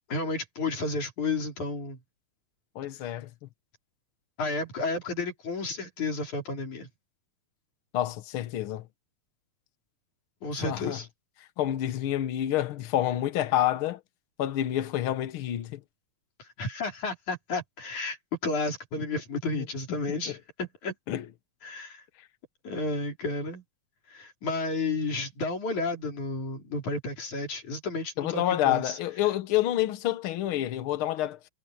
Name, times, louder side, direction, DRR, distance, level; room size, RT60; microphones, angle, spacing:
voice 1, 0.1-2.0 4.4-6.9 10.4-11.1 16.6-18.2 18.4-20.9 21.6-22.0 22.6-23.6 24.1-29.0, left 3 dB, 60° left, 5.8 m, -32 dB
voice 2, 2.7-3.3 7.9-8.9 10.6-11.0 11.6-14.0 14.4-15.8 19.6-19.7 21.1-21.3 28.2-31.4, left 12 dB, 85° left, 1.1 m, -28 dB
omnidirectional pair, 3.9 m